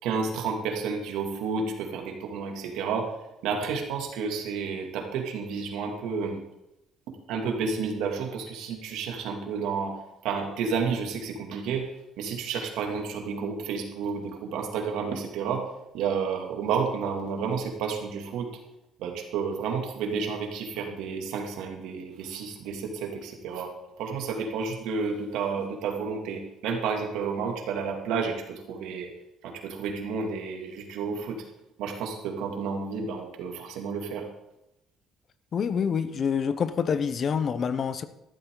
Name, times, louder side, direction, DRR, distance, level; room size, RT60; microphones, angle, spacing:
voice 1, 0.0-3.1 3.4-6.4 7.3-10.0 10.2-11.8 12.2-15.7 15.9-18.5 19.0-23.7 24.0-29.1 29.4-31.4 31.8-34.3, right 5 dB, 85° right, 2.4 m, -31 dB
voice 2, 35.5-38.0, left 6 dB, 35° left, 0.7 m, -27 dB
14.0 x 12.0 x 3.9 m
cardioid pair, 155°, 0 cm